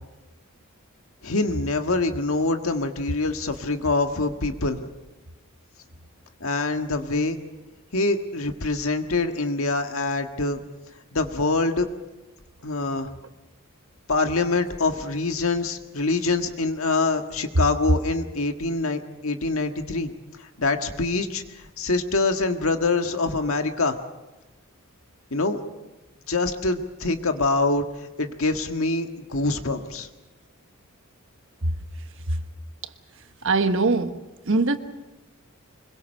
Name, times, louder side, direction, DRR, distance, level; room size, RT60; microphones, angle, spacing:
voice 1, 1.2-4.9 6.4-7.4 7.9-10.6 11.1-11.9 12.6-13.1 14.1-20.1 20.6-21.4 21.8-24.0 25.3-25.6 26.3-27.8 28.2-30.1, left 3 dB, 70° left, 1.7 m, -25 dB
voice 2, 33.4-34.8, right 3 dB, 65° right, 1.4 m, -22 dB
25.0 x 22.0 x 6.7 m
head